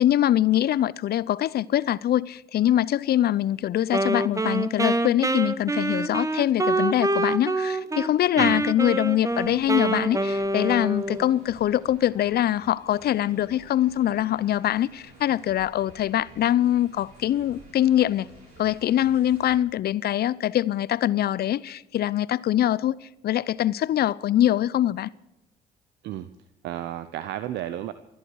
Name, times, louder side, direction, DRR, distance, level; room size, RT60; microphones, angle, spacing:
voice 1, 0.0-18.3 18.6-22.9 23.2-25.1, left 12 dB, 60° left, 0.6 m, -23 dB
Wind instrument woodwind instrument, 3.9-8.1 8.4-11.3, right 2 dB, 15° right, 1.2 m, -26 dB
sound 1, 9.2-19.6, right 2 dB, 90° right, 5.9 m, -50 dB
voice 2, 26.6-27.9, right 12 dB, 70° right, 0.8 m, -32 dB
28.0 x 10.5 x 4.7 m
hypercardioid pair, 50°, 19 cm